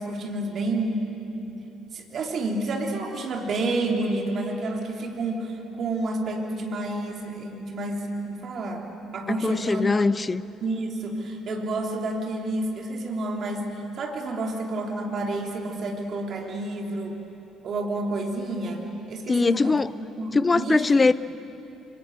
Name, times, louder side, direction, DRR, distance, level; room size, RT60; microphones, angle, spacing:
voice 1, 0.0-1.5 1.9-8.8 9.1-9.8 10.6-17.1 17.6-19.8 20.1-21.1, right 2 dB, 50° right, 3.3 m, -29 dB
voice 2, 9.3-10.4 19.3-19.9 20.3-21.1, left 3 dB, 25° left, 0.7 m, -21 dB
25.0 x 24.0 x 8.0 m
figure-of-eight pair, 50°, 0 cm